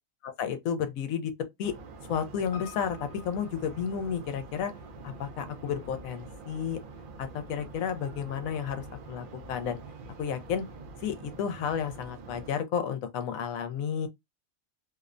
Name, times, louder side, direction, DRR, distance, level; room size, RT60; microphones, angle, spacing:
voice 1, 0.2-1.3 1.6-1.7 2.0-4.7 5.0-6.8 7.2-9.8 10.2-10.7 11.0-14.1, left 7 dB, 80° left, 1.0 m, -32 dB
sound 1, 1.6-12.5, right 3 dB, 70° right, 0.5 m, -46 dB
Piano, 2.5-7.0 7.3-7.4, left 6 dB, 30° left, 0.4 m, -52 dB
2.7 x 2.0 x 2.4 m
omnidirectional pair, 1.4 m